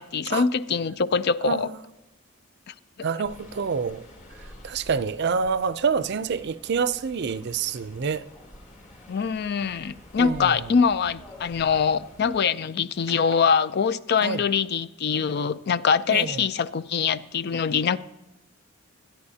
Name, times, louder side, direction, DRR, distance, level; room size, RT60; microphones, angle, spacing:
voice 1, 0.0-1.7 2.7-2.8 9.1-18.0, left 6 dB, 55° left, 0.4 m, -24 dB
voice 2, 1.4-1.7 3.0-4.0 4.6-8.2 10.2-10.7 14.2-14.4 16.1-16.4, right 5 dB, 55° right, 0.5 m, -27 dB
sound 1, 3.2-12.4, left 1 dB, 40° left, 2.7 m, -49 dB
sound 2, 8.0-12.4 13.1-14.2 14.7-14.8 15.1-15.6, left 2 dB, 20° left, 1.5 m, -50 dB
23.0 x 10.5 x 2.8 m
head